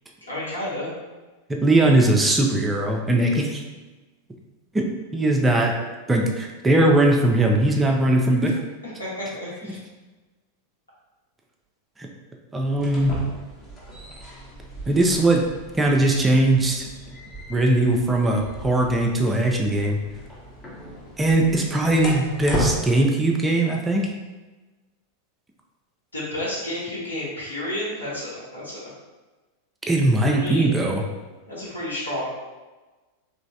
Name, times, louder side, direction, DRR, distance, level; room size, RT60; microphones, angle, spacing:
voice 1, 0.3-0.9 9.0-9.8 26.1-28.9 30.3-30.7 31.5-32.3, left 1 dB, 80° left, -8 dB, 1.3 m, -31 dB
voice 2, 1.6-3.6 4.7-4.8 5.1-5.7 6.1-8.6 12.0-12.1 12.5-13.2 14.9-15.4 15.8-16.9 17.5-20.0 21.2-24.1 29.9-31.0, right 1 dB, 10° right, 1 dB, 0.4 m, -20 dB
sound 1, 12.7-22.8, equal, 20° left, 0.8 m, -35 dB
3.1 x 3.0 x 2.7 m, 1.2 s
figure-of-eight pair, 90°, 0 cm